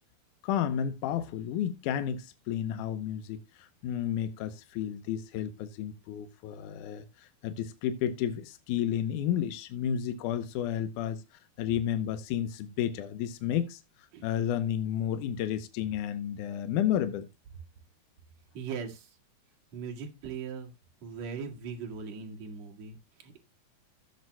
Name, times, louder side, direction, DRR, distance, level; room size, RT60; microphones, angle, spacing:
voice 1, 0.4-11.2 11.6-13.8 14.2-17.3, left 10 dB, 80° left, 1.8 m, -31 dB
voice 2, 18.5-19.1 19.7-20.7 21.0-23.4, right 6 dB, 50° right, 2.5 m, -39 dB
15.5 x 7.6 x 2.2 m
omnidirectional pair, 4.5 m